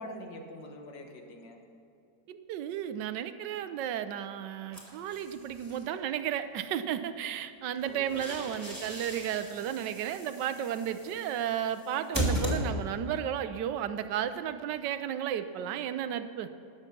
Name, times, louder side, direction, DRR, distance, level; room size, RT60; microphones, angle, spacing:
voice 1, 0.0-1.6 7.9-8.9, left 1 dB, 85° left, 3 dB, 2.0 m, -45 dB
voice 2, 2.3-16.5, right 9 dB, 85° right, 11 dB, 1.3 m, -33 dB
sound 1, 4.7-5.8 7.8-13.1, equal, 10° right, 2.5 m, -36 dB
19.5 x 7.3 x 5.9 m, 2.6 s
omnidirectional pair, 1.9 m